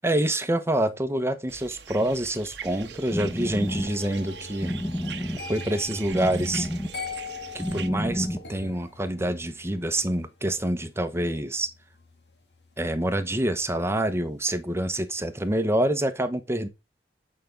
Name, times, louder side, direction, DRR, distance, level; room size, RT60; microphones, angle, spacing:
voice 1, 0.0-4.7 5.5-6.7 7.5-11.7 12.8-16.7, right 1 dB, 15° right, 1.0 m, -26 dB
sound 1, 1.5-7.9, right 8 dB, 75° right, 1.0 m, -42 dB
sound 2, 2.6-8.7, equal, 15° left, 1.4 m, -32 dB
sound 3, 3.7-14.6 14.9-15.3, left 5 dB, 70° left, 2.5 m, -44 dB
9.1 x 5.8 x 3.9 m
head